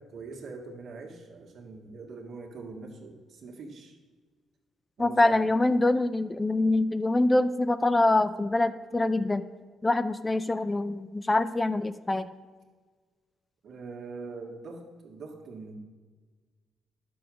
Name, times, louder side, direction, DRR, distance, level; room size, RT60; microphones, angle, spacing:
voice 1, 0.0-4.0 5.0-5.5 13.6-15.8, right 4 dB, 65° right, 2 dB, 1.9 m, -43 dB
voice 2, 5.0-9.4 9.8-12.3, left 2 dB, 20° left, 12 dB, 0.4 m, -25 dB
10.5 x 7.0 x 6.2 m, 1.4 s
cardioid pair, 90°, 0 cm